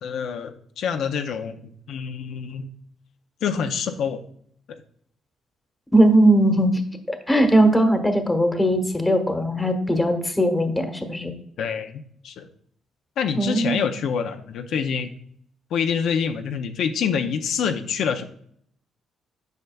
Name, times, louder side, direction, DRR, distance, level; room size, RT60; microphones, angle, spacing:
voice 1, 0.0-1.6 1.9-2.7 3.4-4.2 11.6-12.5 13.2-15.1 15.7-18.3, left 7 dB, 75° left, 6 dB, 0.5 m, -26 dB
voice 2, 5.9-6.8 7.1-11.3 13.4-13.8, right 1 dB, 10° left, 6 dB, 1.1 m, -19 dB
8.0 x 5.5 x 2.3 m, 0.65 s
cardioid pair, 90°, 0 cm